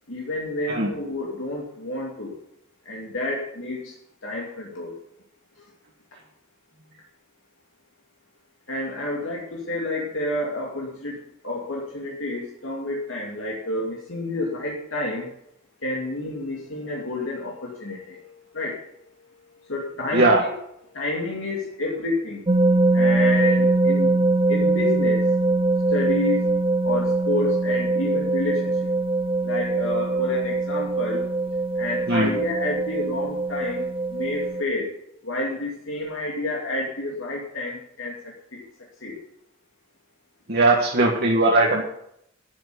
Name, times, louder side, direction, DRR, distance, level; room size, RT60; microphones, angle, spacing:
voice 1, 0.1-2.3 2.8-4.0 4.2-5.0 5.6-5.7 8.7-15.3 15.8-18.8 19.6-20.5 20.9-22.5 22.9-25.3 25.9-28.9 29.4-31.3 31.7-34.9 35.2-38.6 39.0-39.2, left 2 dB, 75° left, -3 dB, 2.8 m, -29 dB
voice 2, 20.1-20.5 32.1-32.3 40.5-41.8, right 2 dB, 50° right, -2 dB, 1.9 m, -19 dB
sound 1, 22.5-34.6, right 2 dB, 25° right, 0.7 m, -22 dB
12.0 x 7.7 x 9.8 m, 0.76 s
head